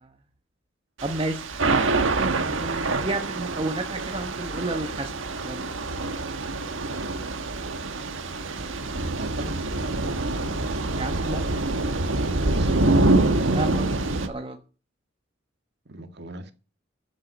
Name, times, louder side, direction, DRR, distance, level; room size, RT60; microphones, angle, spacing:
voice 1, 1.0-1.4 2.0-5.1 5.4-5.6 10.9-11.5 12.7-12.8 13.5-14.6, right 2 dB, 30° right, 1.1 m, -32 dB
Thunder / Rain, 1.0-14.3, right 2 dB, 80° right, 1.5 m, -25 dB
voice 2, 8.9-9.6 12.4-12.9 15.9-16.5, right 1 dB, 60° right, 1.9 m, -37 dB
13.5 x 7.6 x 6.3 m
head